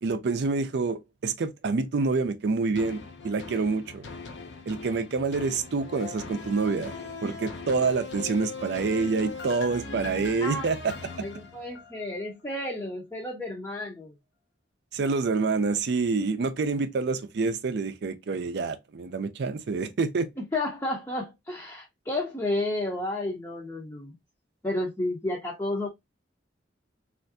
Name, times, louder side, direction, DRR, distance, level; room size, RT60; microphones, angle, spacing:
voice 1, 0.0-4.1 4.7-10.9 14.9-20.3, right 4 dB, 60° right, 0.4 m, -27 dB
sound 1, 2.7-12.1 12.6-12.7, left 4 dB, 70° left, 0.6 m, -40 dB
voice 2, 11.2-14.1 20.5-24.1 24.6-25.9, left 2 dB, 15° left, 0.6 m, -31 dB
3.3 x 2.5 x 2.6 m
head